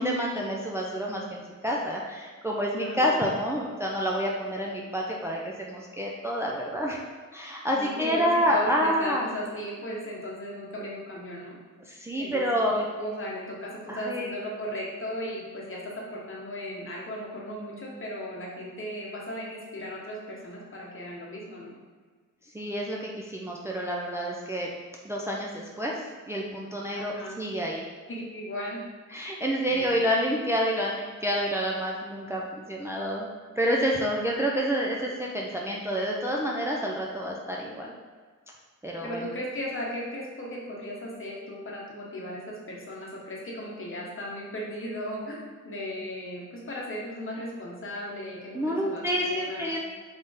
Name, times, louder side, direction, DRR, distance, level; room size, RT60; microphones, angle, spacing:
voice 1, 0.0-7.0 7.3-9.3 11.9-12.7 13.9-14.3 22.5-24.7 25.0-25.9 26.3-27.8 29.1-33.3 33.6-37.9 38.8-39.2 48.5-49.8, equal, 10° right, -2 dB, 0.5 m, -28 dB
voice 2, 2.8-3.2 7.7-11.6 12.2-21.7 26.9-27.4 28.1-28.8 29.6-30.0 34.9-35.0 39.0-49.7, equal, 45° left, -3 dB, 1.1 m, -36 dB
3.9 x 3.7 x 3.6 m, 1.5 s
wide cardioid pair, 100°, 30 cm